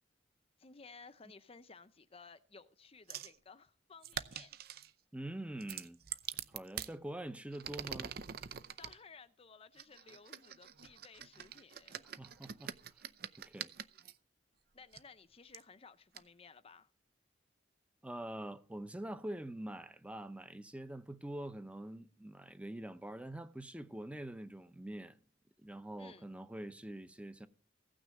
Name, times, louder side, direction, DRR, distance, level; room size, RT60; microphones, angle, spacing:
voice 1, 0.6-4.6 8.8-12.1 14.7-16.9 26.0-26.3, left 4 dB, 35° left, 0.6 m, -57 dB
sound 1, 3.1-3.4 4.0-4.9 5.6-6.9 7.5-9.0 9.8-14.1 14.9-15.0 15.5-15.6 16.1-16.2, right 9 dB, 55° right, 0.7 m, -45 dB
voice 2, 5.1-6.0 6.5-8.1 12.1-13.1 13.5-13.7 18.0-25.2 25.6-27.5, right 1 dB, 5° right, 0.7 m, -45 dB
16.0 x 6.3 x 7.6 m
head